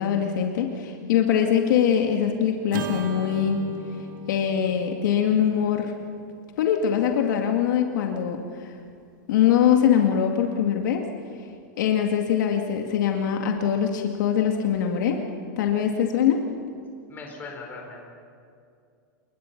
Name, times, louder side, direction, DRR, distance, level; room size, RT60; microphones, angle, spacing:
voice 1, 0.0-3.6 4.3-5.9 6.6-8.7 9.3-11.0 11.8-15.2 15.6-16.4, left 8 dB, 65° left, 2 dB, 2.1 m, -22 dB
Acoustic guitar / Strum, 2.7-7.1, right 5 dB, 80° right, 2.3 m, -39 dB
voice 2, 17.1-18.1, left 3 dB, 20° left, 0 dB, 5.1 m, -39 dB
28.0 x 21.5 x 6.0 m, 2.3 s
supercardioid pair, 160°, 11 cm